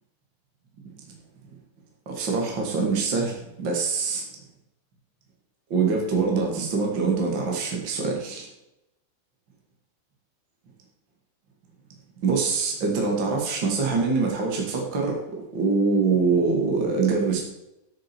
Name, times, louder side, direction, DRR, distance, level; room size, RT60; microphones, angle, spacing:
voice 1, 2.0-4.2 5.7-8.5 12.2-17.4, right 4 dB, 55° right, 0 dB, 1.2 m, -24 dB
15.0 x 6.9 x 4.6 m, 0.88 s
omnidirectional pair, 5.8 m